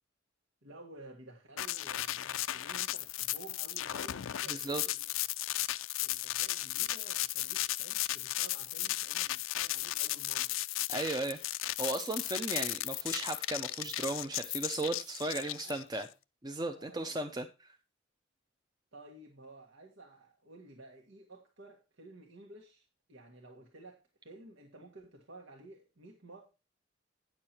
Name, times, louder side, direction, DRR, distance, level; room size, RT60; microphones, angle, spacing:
voice 1, 0.6-5.2 6.0-10.6 15.2-15.8 16.7-17.4 18.9-26.4, right 2 dB, 75° right, 1.7 m, -53 dB
sound 1, 1.6-16.0, left 15 dB, 85° left, 0.4 m, -35 dB
voice 2, 4.5-4.8 10.9-11.4 11.8-16.1 16.4-17.5, right 2 dB, 20° right, 0.6 m, -35 dB
9.8 x 6.7 x 4.4 m
head